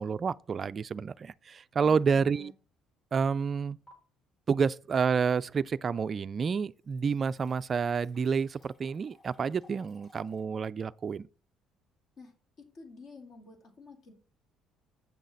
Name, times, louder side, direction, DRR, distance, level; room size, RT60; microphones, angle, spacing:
voice 1, 0.0-2.5 3.1-3.8 4.5-11.3, right 6 dB, 30° right, 0.3 m, -29 dB
sound 1, 1.1-1.4 1.9-2.0 3.9-4.0 5.7-5.8 6.1-10.4, equal, 25° left, 3.5 m, -62 dB
voice 2, 1.8-2.5 12.2-12.3 12.7-14.1, left 3 dB, 50° left, 2.1 m, -50 dB
8.6 x 6.3 x 4.0 m
cardioid pair, 140°, 0 cm